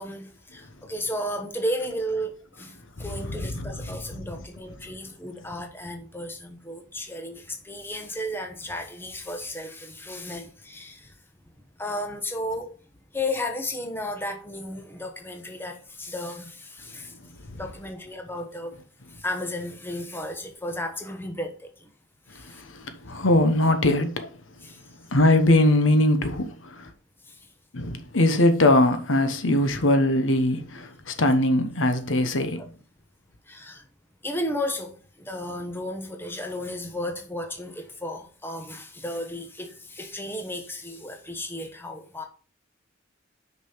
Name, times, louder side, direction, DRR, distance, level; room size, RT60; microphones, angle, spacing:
voice 1, 0.0-2.3 2.6-11.1 11.8-12.7 13.1-17.1 17.6-18.7 19.2-21.5 24.6-24.8 33.5-33.8 34.2-34.9 35.2-42.2, left 1 dB, 10° left, 1.1 m, -33 dB
voice 2, 23.1-24.3 25.1-26.9 27.7-32.6, left 1 dB, 85° left, 1.1 m, -21 dB
6.2 x 5.3 x 5.7 m
head